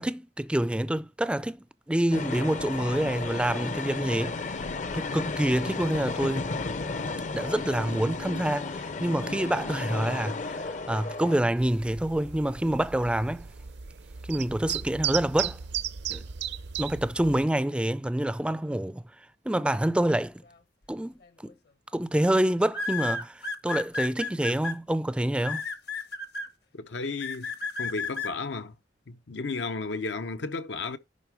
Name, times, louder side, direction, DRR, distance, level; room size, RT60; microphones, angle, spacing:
voice 1, 0.0-4.6 4.9-6.6 7.3-13.5 14.3-15.6 16.1-16.2 16.8-19.0 19.5-20.4 20.9-21.1 21.4-21.5 21.9-25.7, right 1 dB, 5° right, 0.3 m, -27 dB
sound 1, 2.1-11.4, left 3 dB, 45° left, 0.6 m, -33 dB
sound 2, 11.6-17.4, right 9 dB, 70° right, 0.6 m, -35 dB
sound 3, 21.2-21.5 22.7-24.7 25.4-26.5 27.2-28.3, left 4 dB, 65° left, 1.1 m, -32 dB
voice 2, 26.7-27.5 27.8-28.7 29.1-31.0, left 3 dB, 85° left, 0.7 m, -33 dB
11.0 x 3.7 x 4.7 m
head